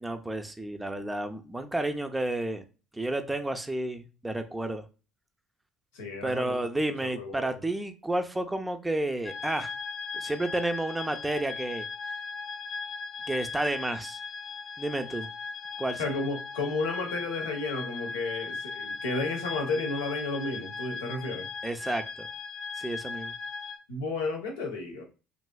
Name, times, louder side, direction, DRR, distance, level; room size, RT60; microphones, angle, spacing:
voice 1, 0.0-2.6 2.9-4.8 6.2-9.7 10.1-11.8 13.3-14.2 14.8-15.3 15.8-16.0 21.6-22.3 22.8-23.3, right 1 dB, 10° right, 8 dB, 0.5 m, -31 dB
voice 2, 5.9-6.5 7.0-7.6 16.0-21.5 23.9-25.0, left 3 dB, 90° left, 2 dB, 0.8 m, -32 dB
sound 1, 9.2-23.8, left 4 dB, 50° left, 0.4 m, -38 dB
3.1 x 2.6 x 2.3 m, 0.33 s
hypercardioid pair, 70°, 0 cm